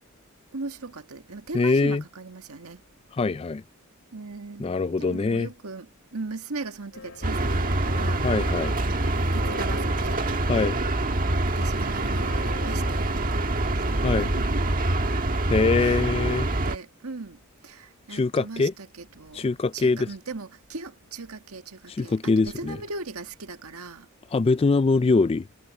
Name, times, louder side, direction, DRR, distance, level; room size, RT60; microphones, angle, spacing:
voice 1, 0.5-2.8 4.1-4.7 5.0-8.6 8.9-10.2 11.1-14.0 14.3-14.6 15.8-19.5 19.7-24.1, right 3 dB, 80° right, 1.7 m, -39 dB
voice 2, 1.5-2.0 3.1-3.6 4.6-5.5 8.2-8.7 10.5-10.8 14.0-14.3 15.1-15.2 15.5-16.5 18.1-18.7 19.3-20.1 21.9-22.8 24.3-25.5, left 3 dB, 25° left, 0.3 m, -23 dB
sound 1, 6.9-15.1, left 3 dB, 70° left, 2.6 m, -45 dB
sound 2, 7.2-16.8, right 2 dB, 40° right, 1.6 m, -25 dB
head